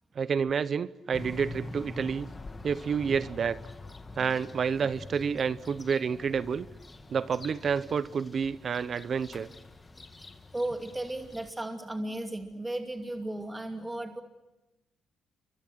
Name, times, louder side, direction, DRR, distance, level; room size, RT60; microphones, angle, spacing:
voice 1, 0.1-2.3 2.6-3.6 4.2-6.7 7.1-9.5, right 6 dB, 50° right, 0.9 m, -29 dB
sound 1, 1.1-11.5, left 2 dB, 25° left, 2.0 m, -45 dB
voice 2, 10.5-14.2, right 1 dB, 15° right, 2.5 m, -35 dB
29.0 x 24.0 x 6.4 m
cardioid pair, 90°, 0 cm